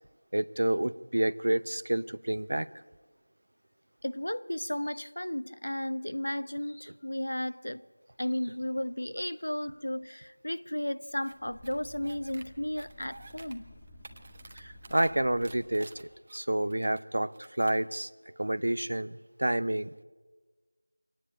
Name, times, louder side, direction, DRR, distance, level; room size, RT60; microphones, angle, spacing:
voice 1, 0.3-2.7 14.5-18.1 18.4-20.0, right 1 dB, 55° right, 0.8 m, -29 dB
voice 2, 4.0-7.8 8.2-13.6, left 1 dB, 80° left, 0.9 m, -34 dB
sound 1, 11.2-11.3 11.6-12.4 12.8-13.5 13.9-15.1 15.4-17.0 17.3-17.8, right 3 dB, 20° right, 1.2 m, -51 dB
sound 2, 11.3-16.2, equal, 10° left, 1.2 m, -53 dB
24.5 x 18.5 x 8.7 m
figure-of-eight pair, 175°, 0 cm